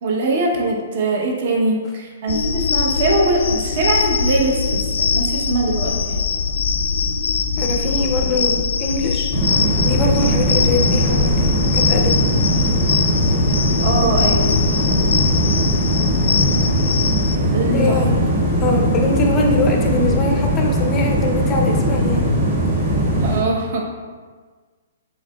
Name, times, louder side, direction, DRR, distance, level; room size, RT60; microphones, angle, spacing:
voice 1, 0.0-6.2 13.8-15.2 17.5-18.0 23.2-24.0, right 2 dB, 45° right, 0 dB, 0.8 m, -22 dB
sound 1, 2.3-17.4, left 5 dB, 75° left, 0.3 m, -21 dB
voice 2, 7.6-9.3 9.8-12.2 17.7-18.2 18.6-22.3, left 2 dB, 15° left, 1 dB, 0.5 m, -22 dB
sound 2, 9.3-23.4, right 1 dB, 25° right, 1.5 m, -19 dB
6.4 x 3.7 x 2.2 m, 1.5 s
hypercardioid pair, 170°, 0 cm